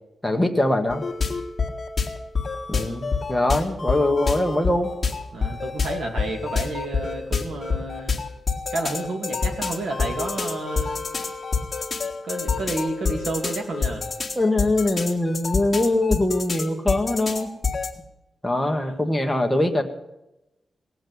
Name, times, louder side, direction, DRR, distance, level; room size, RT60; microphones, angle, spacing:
voice 1, 0.2-1.0 2.7-4.9 14.4-17.5 18.4-19.8, left 1 dB, 5° left, 3 dB, 1.4 m, -22 dB
sound 1, 0.9-17.9, left 5 dB, 30° left, 1.9 m, -28 dB
voice 2, 5.3-8.2 8.7-11.0 12.2-14.1 18.6-19.0, right 2 dB, 70° right, 4 dB, 2.6 m, -31 dB
18.5 x 7.7 x 9.3 m, 0.91 s
wide cardioid pair, 160°, 0 cm